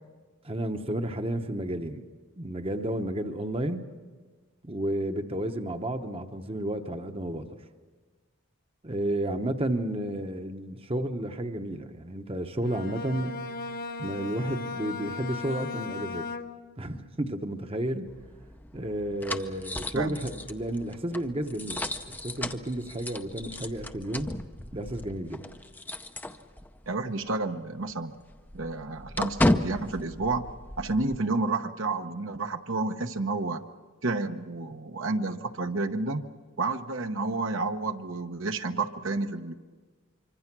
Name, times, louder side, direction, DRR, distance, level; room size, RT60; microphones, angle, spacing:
voice 1, 0.4-2.0 2.4-3.9 4.6-7.5 8.8-13.4 14.0-16.3 16.8-18.1 18.7-24.3 24.7-25.5, right 1 dB, 25° right, 7 dB, 1.0 m, -32 dB
Bowed string instrument, 12.6-16.8, left 4 dB, 40° left, 1.1 m, -37 dB
sound 1, 18.1-26.9 27.2-27.3 27.7-31.2, left 1 dB, 10° left, 0.6 m, -34 dB
voice 2, 26.9-28.1 28.5-30.4 30.8-33.6 34.0-36.2 36.6-39.5, right 3 dB, 60° right, 6 dB, 0.9 m, -30 dB
25.5 x 24.5 x 6.1 m, 1.4 s
head